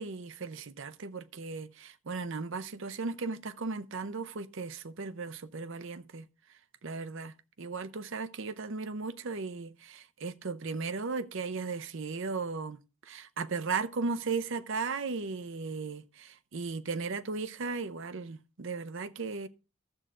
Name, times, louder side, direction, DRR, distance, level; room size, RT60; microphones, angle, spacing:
voice 1, 0.0-6.3 6.8-12.8 13.0-19.5, right 4 dB, 60° right, 0.6 m, -36 dB
12.5 x 7.9 x 3.7 m
head